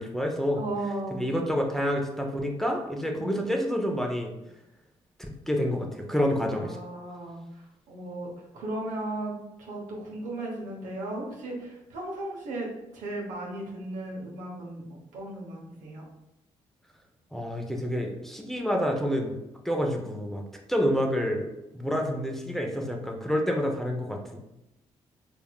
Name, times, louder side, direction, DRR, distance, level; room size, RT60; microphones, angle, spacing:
voice 1, 0.0-0.6 1.1-4.3 5.2-6.8 17.3-19.4 19.6-20.4 20.7-24.4, equal, 5° left, 1 dB, 0.8 m, -28 dB
voice 2, 0.6-1.3 3.1-3.4 6.6-7.4 7.9-9.3 9.6-12.7 12.9-14.8 15.1-16.1, right 1 dB, 75° right, -2 dB, 1.1 m, -36 dB
4.4 x 3.6 x 2.3 m, 0.92 s
hypercardioid pair, 45°, 13 cm